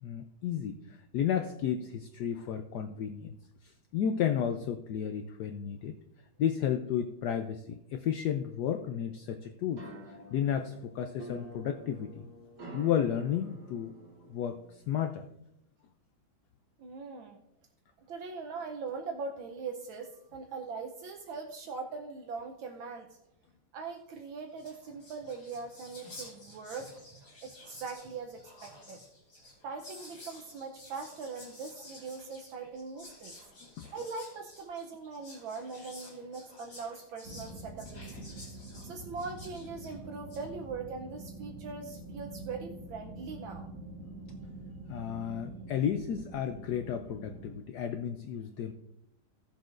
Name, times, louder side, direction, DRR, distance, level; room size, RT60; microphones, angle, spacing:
voice 1, 0.0-3.4 3.6-6.0 6.4-12.2 12.7-13.9 14.3-15.3 33.8-33.9 44.9-48.7, left 9 dB, 75° left, 6 dB, 0.9 m, -33 dB
sound 1, 9.7-14.9, right 2 dB, 60° right, 3.8 m, -48 dB
voice 2, 16.8-17.4 18.1-23.2 23.7-29.0 29.6-33.4 33.9-38.4 38.8-43.7, right 4 dB, 75° right, 4 dB, 1.5 m, -41 dB
Whispering, 24.2-24.3 24.5-40.5, left 1 dB, 50° left, 3.7 m, -52 dB
sound 2, 37.2-47.6, right 2 dB, 40° right, 1.8 m, -46 dB
17.0 x 7.1 x 2.5 m, 0.86 s
omnidirectional pair, 2.3 m